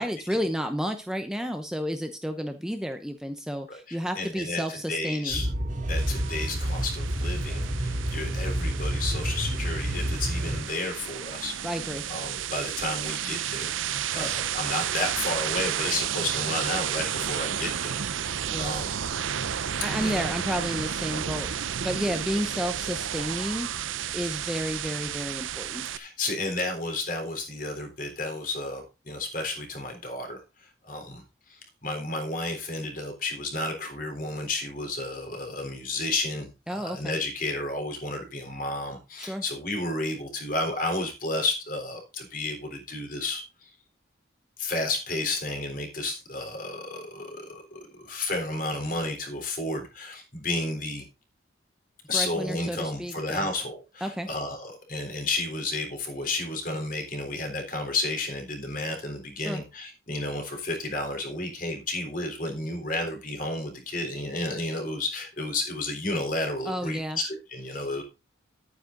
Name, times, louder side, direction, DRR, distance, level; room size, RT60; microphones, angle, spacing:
voice 1, 0.0-5.4 11.6-12.0 14.2-14.3 18.5-18.7 19.8-23.7 24.1-25.8 36.7-37.2 39.2-39.4 52.1-53.5 54.0-54.3 59.4-59.6 66.6-67.2, equal, 5° right, 5 dB, 0.8 m, -31 dB
voice 2, 3.7-5.5 5.9-11.5 12.1-13.7 14.1-19.0 20.0-20.3 25.9-30.4 30.9-31.2 31.5-43.7 44.6-51.1 52.1-68.0, left 2 dB, 45° left, 3 dB, 3.7 m, -32 dB
sound 1, 5.3-10.6, right 1 dB, 40° right, 2.5 m, -29 dB
sound 2, 6.0-26.0, right 9 dB, 85° right, 0.8 m, -32 dB
11.5 x 9.3 x 3.9 m, 0.28 s
head